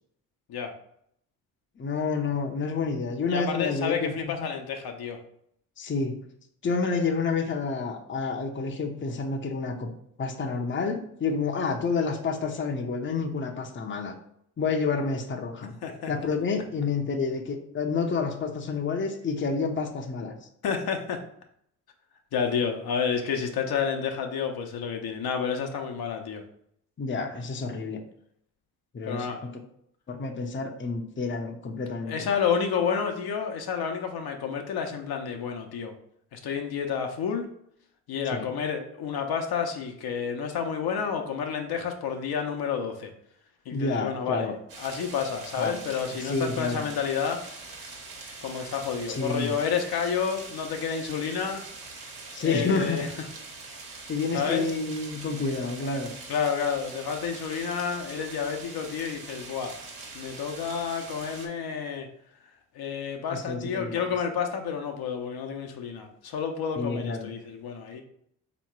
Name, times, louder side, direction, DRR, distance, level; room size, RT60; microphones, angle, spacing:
voice 1, 1.8-4.5 5.8-6.2 6.6-9.9 10.2-14.1 14.6-15.7 16.1-20.4 27.0-28.0 28.9-29.5 30.1-32.3 38.3-38.5 43.7-44.6 45.6-45.8 46.2-46.9 49.1-49.5 52.3-53.1 54.1-56.1 63.3-64.1 66.8-67.3, left 4 dB, 30° left, 4 dB, 0.8 m, -29 dB
voice 2, 3.3-5.2 15.8-16.1 20.6-21.2 22.3-26.4 29.1-29.4 32.1-35.9 36.3-37.5 38.1-43.1 43.7-47.4 48.4-51.7 52.4-53.1 53.7-53.9 54.3-54.7 56.3-59.7 60.1-62.1 62.7-68.0, left 6 dB, 60° left, 4 dB, 0.8 m, -30 dB
sound 1, 44.7-61.5, right 3 dB, 55° right, 1.5 m, -43 dB
3.5 x 3.0 x 4.6 m, 0.70 s
supercardioid pair, 55°, 42 cm